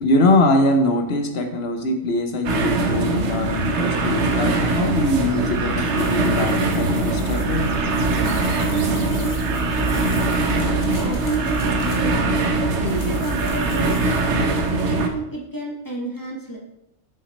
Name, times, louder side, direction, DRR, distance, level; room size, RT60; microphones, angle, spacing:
voice 1, 0.0-7.7, left 1 dB, 60° left, 5 dB, 1.0 m, -22 dB
sound 1, 2.4-15.1, right 2 dB, 70° right, 1.0 m, -22 dB
sound 2, 5.8-12.3 12.8-14.4, left 4 dB, 80° left, 1.3 m, -43 dB
sound 3, 6.6-14.5, right 1 dB, 35° right, 3.3 m, -33 dB
voice 2, 8.7-9.3 10.6-14.2 14.7-16.6, right 3 dB, 20° left, -1 dB, 1.2 m, -30 dB
6.2 x 5.9 x 4.1 m, 0.86 s
omnidirectional pair, 1.2 m